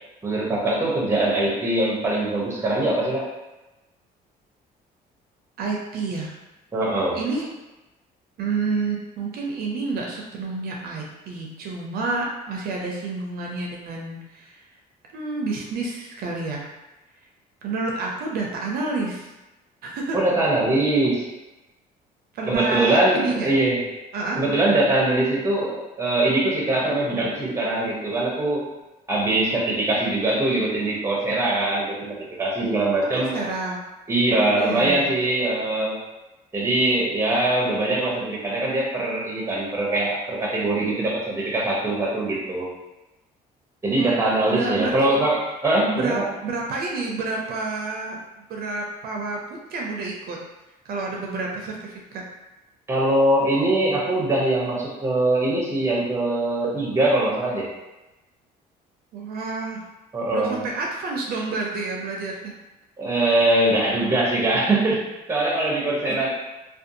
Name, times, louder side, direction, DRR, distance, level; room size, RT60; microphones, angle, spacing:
voice 1, 0.2-3.3 6.7-7.2 20.1-21.3 22.4-23.9 24.4-28.7 29.1-33.4 34.1-36.0 36.5-42.7 43.8-46.2 52.9-57.7 60.1-60.6 63.0-66.3, right 2 dB, 15° right, -3 dB, 0.7 m, -22 dB
voice 2, 5.6-6.3 7.1-7.4 8.4-14.6 15.1-16.7 17.6-19.3 19.8-20.2 22.3-23.5 24.1-24.4 33.1-33.8 34.5-35.1 43.9-44.2 44.5-45.2 45.9-50.4 50.8-52.2 59.1-59.8 60.3-62.5, right 3 dB, 65° right, -1 dB, 0.5 m, -29 dB
2.5 x 2.3 x 2.6 m, 1.0 s
cardioid pair, 110°, 17 cm